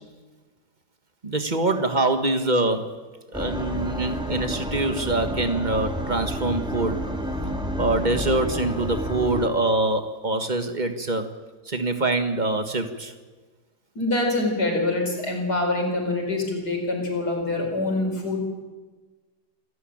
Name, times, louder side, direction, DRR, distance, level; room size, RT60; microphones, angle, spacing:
voice 1, 1.2-2.8 3.3-7.0 7.8-11.3 11.6-13.1, right 2 dB, 30° right, 7 dB, 1.7 m, -24 dB
sound 1, 3.3-9.5, equal, 5° right, 2.3 m, -30 dB
voice 2, 13.9-18.4, left 2 dB, 80° left, 2 dB, 5.1 m, -25 dB
28.0 x 13.0 x 8.9 m, 1.3 s
omnidirectional pair, 1.7 m